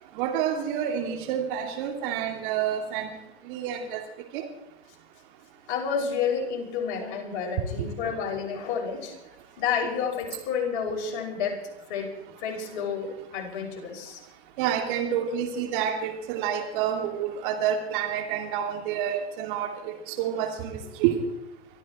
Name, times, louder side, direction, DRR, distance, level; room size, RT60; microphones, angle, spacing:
voice 1, 0.2-3.1 3.4-4.0 4.3-4.4 7.8-7.9 14.6-21.2, right 9 dB, 50° right, 4 dB, 2.9 m, -28 dB
voice 2, 5.7-9.1 9.6-11.6 11.9-12.1 12.4-14.2, left 6 dB, 50° left, 1 dB, 5.8 m, -30 dB
23.5 x 14.0 x 4.4 m, 0.84 s
hypercardioid pair, 110°, 33 cm